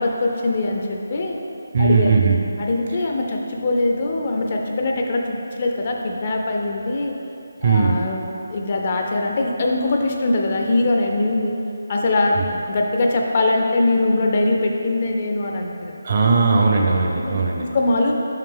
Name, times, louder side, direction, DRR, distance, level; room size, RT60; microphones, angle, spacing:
voice 1, 0.0-1.4 1.8-2.1 2.6-7.1 7.6-11.5 11.9-15.9 17.3-17.4 17.7-18.1, left 2 dB, 30° left, 1 dB, 0.4 m, -22 dB
voice 2, 1.7-2.4 7.6-8.0 12.4-12.5 16.0-17.7, right 4 dB, 35° right, 1 dB, 0.5 m, -18 dB
5.6 x 4.8 x 3.7 m, 2.9 s
figure-of-eight pair, 175°, 0 cm